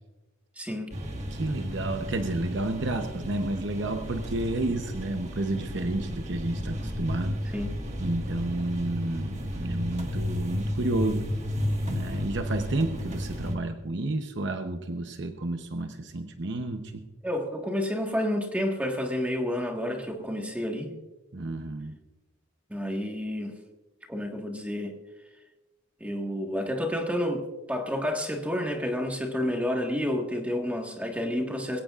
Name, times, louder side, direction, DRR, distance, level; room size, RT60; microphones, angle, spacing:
voice 1, 0.6-0.9 3.8-4.0 7.5-7.7 17.2-20.9 22.7-23.6 24.1-25.0 26.0-31.8, left 1 dB, 5° right, 2 dB, 1.6 m, -30 dB
sound 1, 0.9-13.6, equal, 35° right, 1.6 m, -33 dB
voice 2, 1.3-7.5 8.0-11.3 11.9-17.1 21.3-22.0, right 2 dB, 60° right, 6 dB, 0.9 m, -31 dB
21.5 x 17.0 x 2.5 m, 1.2 s
head